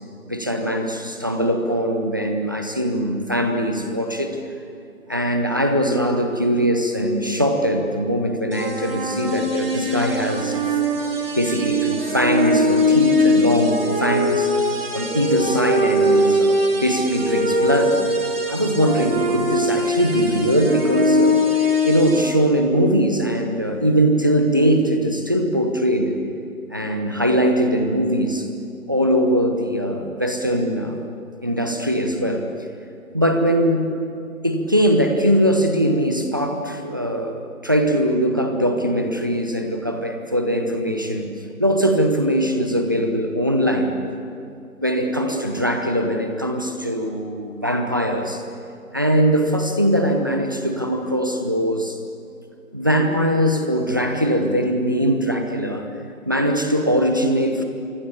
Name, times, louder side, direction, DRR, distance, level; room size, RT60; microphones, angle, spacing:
voice 1, 0.3-4.4 5.1-10.6 11.4-14.5 14.9-17.9 18.5-26.2 26.7-28.5 28.9-31.0 31.4-32.5 33.1-33.9 34.4-41.3 41.6-43.9 44.8-48.4 48.9-52.0 52.7-55.9 56.3-57.6, equal, 15° right, 4 dB, 0.9 m, -21 dB
sound 1, 8.5-22.2, left 1 dB, 40° right, 3.8 m, -21 dB
27.5 x 25.0 x 7.1 m, 2.5 s
figure-of-eight pair, 160°, 42 cm